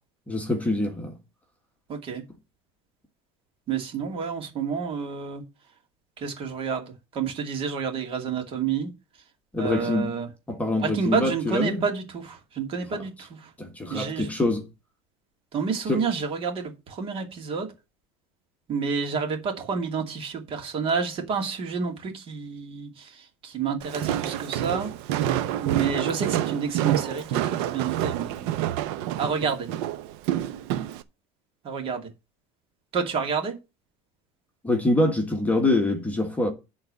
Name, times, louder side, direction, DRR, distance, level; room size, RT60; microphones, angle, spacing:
voice 1, 0.3-1.1 9.5-10.2 10.5-11.8 12.9-13.0 13.6-14.7 15.9-16.0 34.6-36.5, left 2 dB, 10° left, 1.6 m, -25 dB
voice 2, 1.9-2.2 3.7-5.4 6.2-8.9 9.6-10.3 10.8-13.5 13.9-14.3 15.5-17.7 18.7-25.3 25.6-28.5 29.2-29.7 31.6-32.1 32.9-33.6, right 5 dB, 40° right, 2.5 m, -29 dB
Walk footsteps, 23.8-31.0, right 12 dB, 80° right, 0.8 m, -28 dB
10.5 x 3.9 x 7.6 m
cardioid pair, 140°, 14 cm